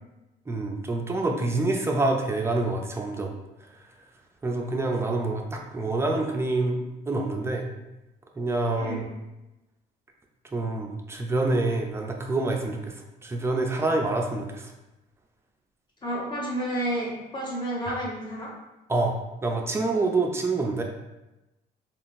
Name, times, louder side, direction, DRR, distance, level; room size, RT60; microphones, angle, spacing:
voice 1, 0.5-3.3 4.4-6.8 7.1-7.7 8.4-9.0 10.5-12.9 13.2-14.7 17.9-18.0 18.9-19.1 19.4-20.8, right 2 dB, 15° right, 2 dB, 0.4 m, -26 dB
voice 2, 16.0-18.5, right 1 dB, 25° left, -5 dB, 1.1 m, -30 dB
3.6 x 2.4 x 2.5 m, 0.99 s
cardioid pair, 110°, 17 cm